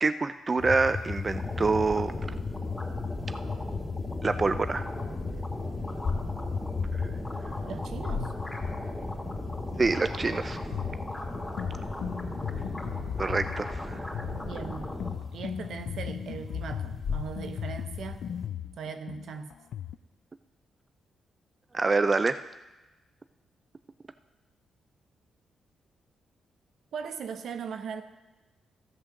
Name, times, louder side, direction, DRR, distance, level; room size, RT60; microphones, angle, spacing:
voice 1, 0.0-2.1 4.2-4.8 9.8-10.6 13.2-14.0 21.7-22.4, right 3 dB, 35° right, 12 dB, 0.3 m, -26 dB
sound 1, 0.6-18.5, left 5 dB, 60° left, 2.2 m, -36 dB
sound 2, 1.3-15.1, left 1 dB, 10° left, 2.6 m, -38 dB
voice 2, 7.7-8.3 14.3-14.9 15.3-18.2 18.8-19.5 26.9-28.0, right 6 dB, 75° right, 8 dB, 0.8 m, -39 dB
sound 3, 10.7-20.0, left 10 dB, 75° left, 0.3 m, -38 dB
14.5 x 5.6 x 6.4 m, 1.1 s
supercardioid pair, 60°, 0 cm